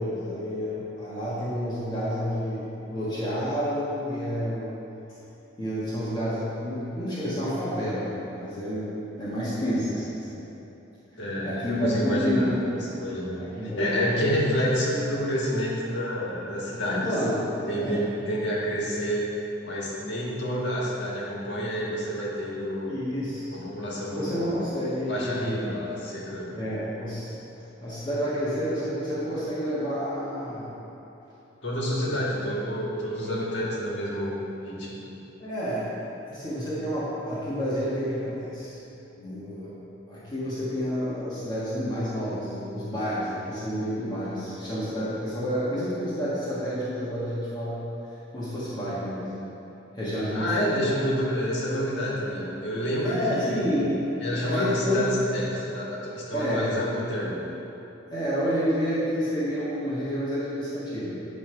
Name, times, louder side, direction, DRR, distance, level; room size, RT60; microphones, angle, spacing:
voice 1, 0.0-4.7 5.6-8.9 9.2-10.4 11.1-12.6 13.4-14.3 16.9-17.4 17.8-18.0 22.9-23.7 24.0-25.7 26.6-27.3 27.8-30.8 32.0-32.2 35.4-35.9 36.3-38.8 39.2-39.7 40.1-47.8 48.3-49.3 49.9-50.7 53.0-54.1 54.4-55.1 56.3-56.7 58.1-61.2, equal, 20° left, -11 dB, 1.5 m, -29 dB
voice 2, 11.2-12.5 12.9-17.1 17.7-19.3 19.6-22.9 23.5-24.7 25.1-26.6 31.6-35.0 50.3-53.8 54.2-55.1 55.3-57.4, equal, 65° left, -5 dB, 1.6 m, -29 dB
9.7 x 3.4 x 5.7 m, 2.9 s
head